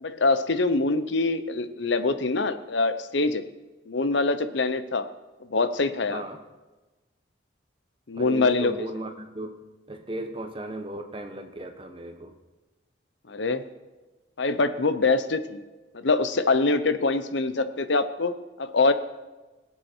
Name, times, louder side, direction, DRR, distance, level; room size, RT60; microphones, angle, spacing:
voice 1, 0.0-3.4 3.9-5.1 5.5-6.2 8.1-8.9 13.3-13.7 14.4-15.6 15.9-18.9, left 3 dB, 70° left, 11 dB, 0.8 m, -24 dB
voice 2, 6.1-6.4 8.1-12.3, right 1 dB, 25° right, 6 dB, 1.1 m, -36 dB
21.0 x 8.1 x 4.5 m, 1.2 s
head